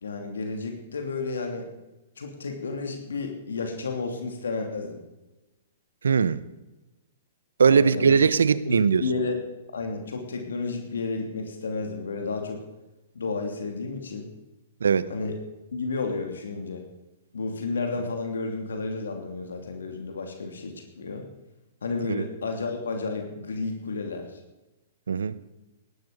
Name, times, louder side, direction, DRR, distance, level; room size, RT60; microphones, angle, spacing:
voice 1, 0.0-1.7 2.2-5.0 7.7-8.3 8.6-9.4 9.7-12.6 13.1-14.3 15.1-15.4 15.7-16.8 17.3-21.2 21.8-24.4, left 4 dB, 80° left, 4 dB, 2.8 m, -32 dB
voice 2, 6.0-6.4 7.6-9.0 14.8-15.1 22.1-22.3 25.1-25.4, right 6 dB, 80° right, 17 dB, 0.8 m, -20 dB
17.0 x 12.5 x 5.3 m, 1.0 s
hypercardioid pair, 120°, 0 cm